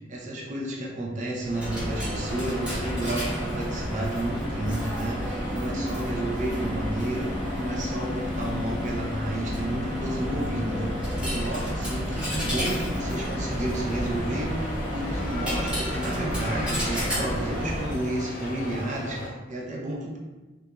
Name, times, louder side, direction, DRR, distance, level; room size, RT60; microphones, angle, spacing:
voice 1, 0.1-20.2, right 1 dB, 35° right, -2 dB, 0.5 m, -31 dB
Coin (dropping), 1.4-18.1, equal, 5° right, 0.8 m, -30 dB
sound 1, 12.9-19.3, left 1 dB, 40° left, 0.4 m, -36 dB
2.4 x 2.3 x 2.9 m, 1.2 s
head